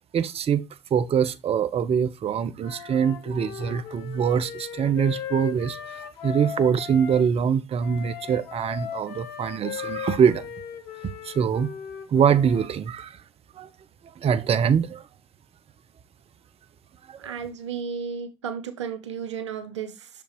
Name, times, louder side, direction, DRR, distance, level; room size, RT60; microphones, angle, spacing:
voice 1, 0.1-0.6 0.9-5.8 6.2-10.4 11.2-11.7 12.1-13.2 13.6-13.7 14.2-15.0 17.1-17.2, right 7 dB, 45° right, 0.7 m, -23 dB
Wind instrument woodwind instrument, 2.6-7.2 7.8-12.7, left 9 dB, 75° left, 1.1 m, -37 dB
voice 2, 17.2-20.1, right 7 dB, 90° right, 0.7 m, -33 dB
6.5 x 5.2 x 3.0 m
hypercardioid pair, 55°, 14 cm